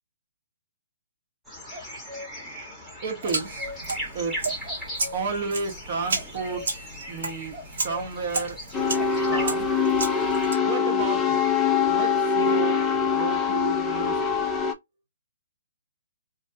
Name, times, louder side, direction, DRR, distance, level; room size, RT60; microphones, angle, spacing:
sound 1, 1.4-9.5, equal, 5° right, 1.0 m, -38 dB
voice 1, 3.0-4.4 5.1-6.6 7.1-7.5 7.8-8.6 9.3-9.7 10.6-11.5 11.9-14.6, right 4 dB, 45° right, 1.0 m, -32 dB
sound 2, 3.2-10.5, right 3 dB, 70° right, 1.2 m, -33 dB
sound 3, 8.7-14.7, left 6 dB, 15° left, 0.4 m, -23 dB
2.4 x 2.2 x 2.6 m
hypercardioid pair, 150°, 0 cm